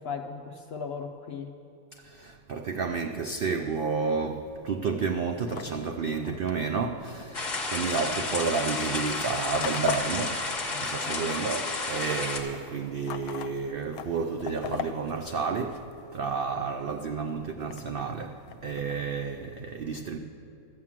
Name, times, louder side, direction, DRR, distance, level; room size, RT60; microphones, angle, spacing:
voice 1, 0.0-1.5 10.7-11.3, left 5 dB, 70° left, 5 dB, 0.6 m, -38 dB
voice 2, 2.0-10.4 10.8-15.8 16.1-18.3 18.6-20.2, right 5 dB, 90° right, 6 dB, 0.5 m, -31 dB
sound 1, 4.9-11.5 11.7-16.3 16.8-19.0, left 8 dB, 85° left, 1.1 m, -41 dB
sound 2, 7.3-12.4, left 3 dB, 35° left, 1.1 m, -31 dB
13.0 x 7.3 x 7.4 m, 2.8 s
omnidirectional pair, 1.6 m